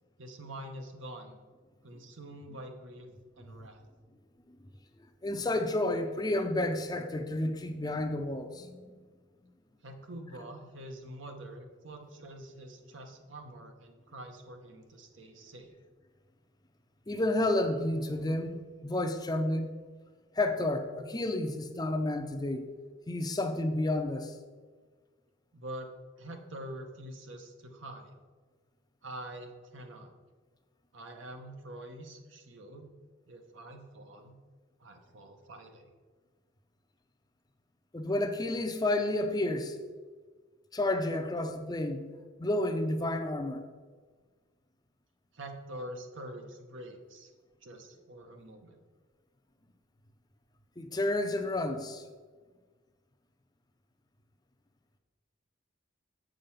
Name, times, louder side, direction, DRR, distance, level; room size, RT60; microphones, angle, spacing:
voice 1, 0.2-1.4 1.8-3.1 3.3-3.8 9.8-15.7 25.5-25.9 26.2-28.1 29.0-30.1 30.9-32.9 33.3-34.4 34.8-35.9 45.3-47.3 47.6-48.8, right 1 dB, 70° right, 1.0 m, -45 dB
voice 2, 5.2-8.8 17.1-19.7 20.4-22.7 23.1-24.3 37.9-39.8 40.7-42.1 42.4-43.6 50.8-52.0, left 1 dB, 20° left, 0.5 m, -30 dB
7.6 x 5.2 x 5.7 m
head